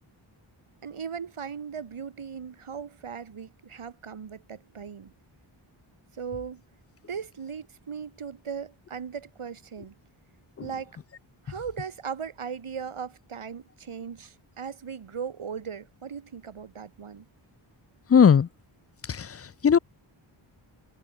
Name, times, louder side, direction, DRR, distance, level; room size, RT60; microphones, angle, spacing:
voice 1, 0.8-5.1 6.1-6.6 7.1-9.9 10.6-11.0 11.4-17.2, right 6 dB, 85° right, 3.1 m, -38 dB
voice 2, 18.1-18.5 19.1-19.8, left 7 dB, 30° left, 0.4 m, -19 dB
wide cardioid pair, 75°, 49 cm